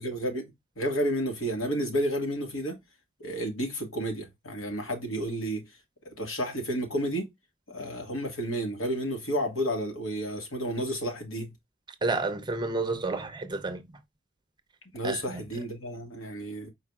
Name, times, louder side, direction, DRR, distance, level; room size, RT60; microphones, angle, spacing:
voice 1, 0.0-2.8 3.2-5.6 6.0-7.3 7.7-11.5 14.9-16.7, equal, 80° left, 1.8 m, -31 dB
voice 2, 12.0-13.8 15.0-15.4, right 3 dB, 20° right, 0.6 m, -30 dB
4.8 x 4.6 x 2.3 m
head